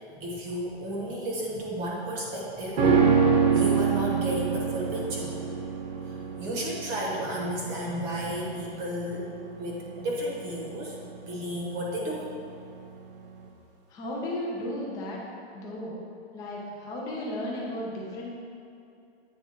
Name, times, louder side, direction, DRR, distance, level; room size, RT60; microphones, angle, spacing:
voice 1, 0.1-3.0 3.5-5.3 6.0-9.3 9.6-12.3, equal, 25° right, -3 dB, 1.0 m, -33 dB
sound 1, 2.8-12.2 12.5-12.6, right 6 dB, 55° right, 1.1 m, -26 dB
voice 2, 13.9-15.2 15.5-15.9 16.3-18.4, left 1 dB, 10° left, -4 dB, 0.5 m, -34 dB
8.5 x 3.4 x 4.3 m, 2.6 s
supercardioid pair, 170°, 32 cm